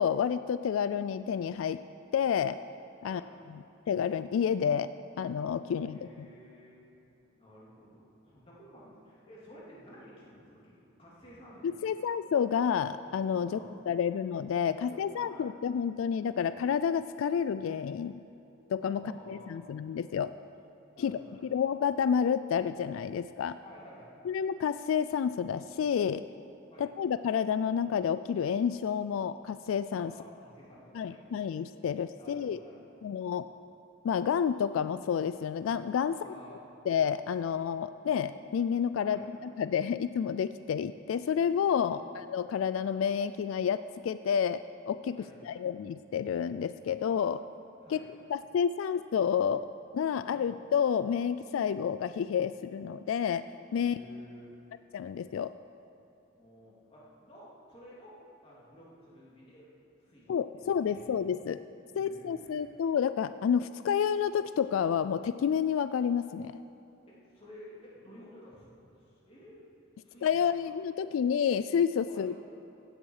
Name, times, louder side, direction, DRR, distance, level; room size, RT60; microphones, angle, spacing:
voice 1, 0.0-1.8 2.1-2.6 3.0-3.2 3.9-4.9 5.2-6.1 11.8-13.6 13.9-18.2 18.7-20.3 21.0-21.2 21.5-23.6 24.3-26.2 26.8-30.1 31.0-32.6 33.0-33.4 34.0-36.2 36.9-44.6 44.9-45.2 45.5-47.4 47.9-48.0 48.3-49.6 49.9-53.4 53.7-54.0 54.9-55.5 60.3-61.6 62.0-66.6 70.2-72.4, left 7 dB, 90° left, 12 dB, 0.3 m, -29 dB
voice 2, 5.7-6.9 7.3-11.9 13.4-13.8 14.7-15.5 18.9-19.6 20.9-21.4 23.6-24.2 26.7-26.9 30.0-31.2 32.1-33.1 36.1-36.6 39.0-39.3 41.8-42.2 45.1-45.5 47.8-48.2 50.0-50.5 53.8-54.5 56.3-58.2 58.4-59.7 60.0-61.0 61.9-62.7 67.1-68.6 69.0-69.6 70.0-70.7 72.1-72.3, equal, 30° left, -6 dB, 3.0 m, -53 dB
15.5 x 9.8 x 4.8 m, 2.9 s
head